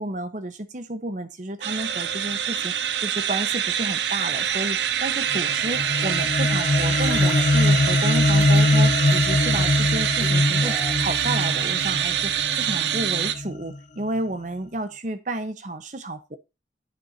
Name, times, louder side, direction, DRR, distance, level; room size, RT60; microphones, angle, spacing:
voice 1, 0.0-2.7 3.0-16.4, right 1 dB, 45° right, 10 dB, 0.9 m, -31 dB
sound 1, 1.6-13.3, right 9 dB, 75° right, 0.6 m, -25 dB
sound 2, 5.3-13.8, left 2 dB, 40° left, 0.4 m, -22 dB
sound 3, 7.0-7.7 8.3-8.6 9.1-9.7 10.2-11.9 12.3-12.4, right 1 dB, 10° right, 0.8 m, -40 dB
10.0 x 6.2 x 2.7 m, 0.26 s
head